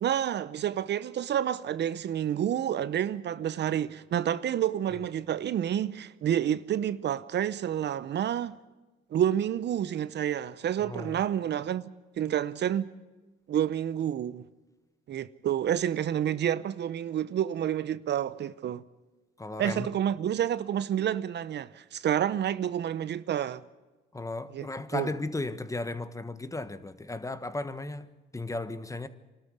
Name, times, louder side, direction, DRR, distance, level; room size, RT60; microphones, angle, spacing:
voice 1, 0.0-8.6 9.1-11.9 12.2-12.9 13.5-14.4 15.1-18.8 19.6-23.6 24.5-24.7 24.9-25.1, right 10 dB, 60° right, 0.7 m, -29 dB
voice 2, 10.8-11.2 19.4-19.9 24.1-28.1 28.3-29.1, left 2 dB, 15° left, 1.3 m, -35 dB
25.0 x 13.0 x 9.5 m
cardioid pair, 90°, 20 cm